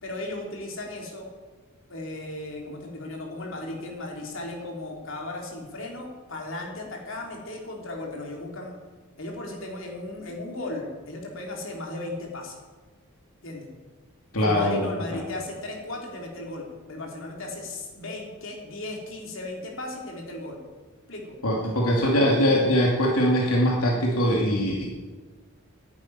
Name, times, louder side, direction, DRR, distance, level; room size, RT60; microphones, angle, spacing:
voice 1, 0.0-1.3 1.9-8.8 9.2-12.6 13.4-13.7 14.4-20.6 21.1-21.3 21.9-22.0, left 2 dB, 60° left, 0 dB, 3.3 m, -36 dB
voice 2, 14.3-15.2 21.4-24.9, equal, 80° left, -1 dB, 2.6 m, -22 dB
10.5 x 10.5 x 9.7 m, 1.4 s
head